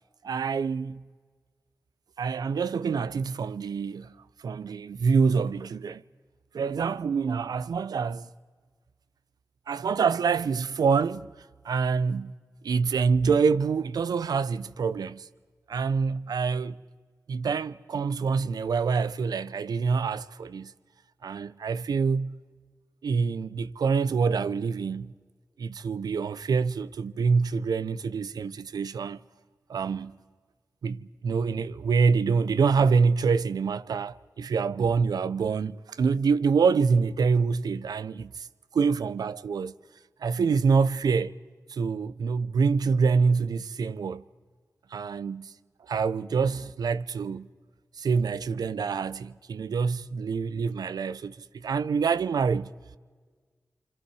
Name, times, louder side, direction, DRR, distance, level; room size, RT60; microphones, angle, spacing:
voice 1, 0.2-1.1 2.2-4.2 4.4-6.0 6.5-8.3 9.7-11.3 11.6-12.3 12.6-15.3 15.7-16.8 17.3-20.7 21.2-22.4 23.0-25.2 25.6-29.2 29.7-30.2 30.8-38.5 38.7-39.7 40.2-41.3 41.7-44.2 44.9-45.5 45.9-47.5 48.0-52.7, right 5 dB, 85° right, 0.6 m, -26 dB
27.0 x 26.0 x 4.8 m
cardioid pair, 50°, 7 cm